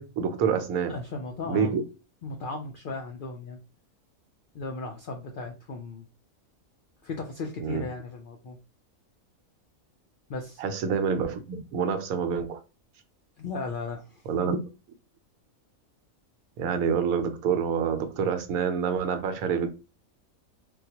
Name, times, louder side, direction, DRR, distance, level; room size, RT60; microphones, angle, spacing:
voice 1, 0.0-0.9 1.5-1.8 7.6-7.9 10.6-12.6 14.3-14.6 16.6-19.7, right 6 dB, 85° right, 1.1 m, -27 dB
voice 2, 0.9-1.8 2.2-3.6 4.5-6.1 7.0-8.6 10.3-10.6 13.4-14.2, left 3 dB, 75° left, 0.4 m, -36 dB
3.8 x 2.2 x 2.8 m
omnidirectional pair, 1.5 m